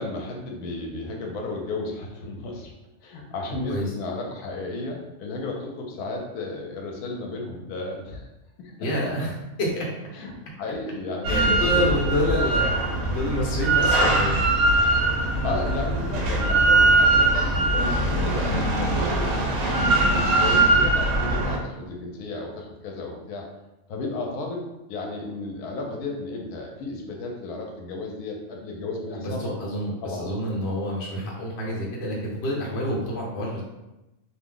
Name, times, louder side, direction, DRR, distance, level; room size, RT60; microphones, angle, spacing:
voice 1, 0.0-2.7 3.0-8.3 8.6-9.1 10.1-12.5 15.4-23.5 23.9-24.6 24.9-29.5 30.0-30.3, left 2 dB, 85° left, 0 dB, 1.1 m, -33 dB
voice 2, 8.8-9.3 9.6-9.9 11.3-12.6 13.1-14.4 29.1-33.6, equal, 55° left, -3 dB, 0.9 m, -28 dB
Drill, 11.2-21.6, right 2 dB, 75° right, 1.0 m, -21 dB
2.6 x 2.0 x 3.6 m, 0.98 s
omnidirectional pair, 1.6 m